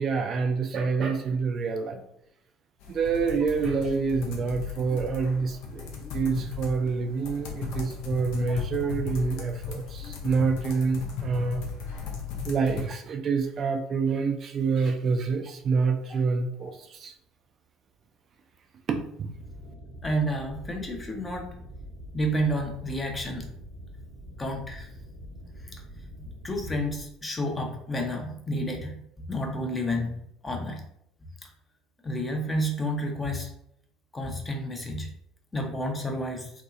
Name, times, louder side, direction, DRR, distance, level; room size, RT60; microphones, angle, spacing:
voice 1, 0.0-2.0 2.9-11.6 12.4-17.1 18.9-19.5, right 5 dB, 45° right, 4 dB, 0.3 m, -27 dB
sound 1, 2.8-12.8, left 6 dB, 65° left, 0.5 m, -36 dB
voice 2, 8.5-8.9 16.6-16.7 20.0-21.5 22.1-23.5 24.4-24.9 25.6-25.8 26.2-30.1 30.4-30.8 31.4-31.5 32.0-33.5 34.1-35.1 35.5-36.5, equal, 20° left, 2 dB, 0.6 m, -30 dB
sound 2, 19.3-27.0, equal, 75° right, 0.9 m, -44 dB
2.7 x 2.3 x 2.4 m, 0.73 s
figure-of-eight pair, 65°, 0 cm